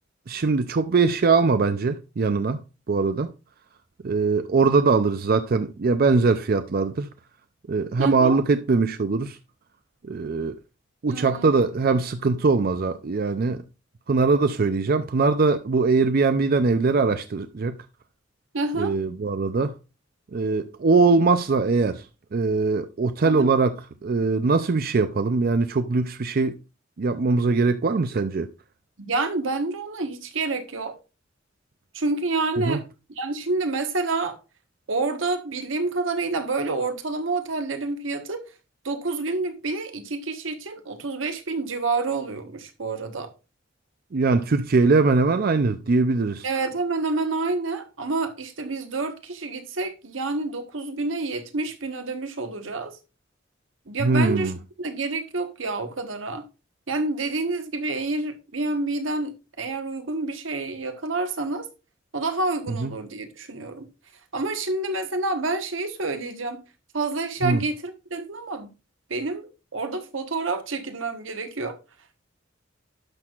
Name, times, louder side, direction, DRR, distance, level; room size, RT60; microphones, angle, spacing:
voice 1, 0.3-2.6 2.9-3.3 4.0-7.1 7.7-9.4 10.0-10.5 11.0-13.6 14.1-17.8 18.8-19.7 20.3-22.0 22.3-23.7 24.0-26.5 27.0-28.5 32.6-32.8 44.1-46.4 54.0-54.5 62.8-62.9 67.4-67.6, right 4 dB, 50° right, 0.5 m, -21 dB
voice 2, 8.0-8.4 11.1-11.5 18.5-18.9 23.2-23.5 29.0-31.0 31.9-32.8 33.2-34.4 34.9-38.4 38.8-43.3 46.4-53.0 53.9-54.5 54.8-56.5 56.9-61.7 62.1-63.9 64.3-66.6 66.9-68.7 69.1-71.8, right 3 dB, 85° right, 1.2 m, -28 dB
11.5 x 6.3 x 2.4 m
head